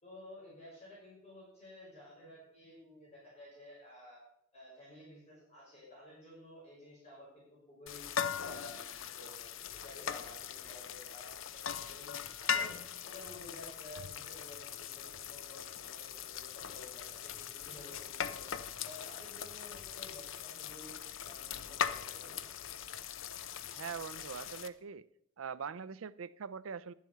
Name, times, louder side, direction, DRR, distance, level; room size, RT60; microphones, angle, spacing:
voice 1, 0.0-4.2 4.5-8.0 8.4-12.7 13.0-18.4 18.8-20.9 21.2-22.4, left 1 dB, 35° left, -7 dB, 5.7 m, -53 dB
sound 1, 7.9-24.7, left 8 dB, 70° left, 0.6 m, -40 dB
voice 2, 23.6-25.1 25.4-26.9, right 6 dB, 85° right, 16 dB, 0.5 m, -42 dB
11.5 x 7.5 x 6.9 m, 0.76 s
head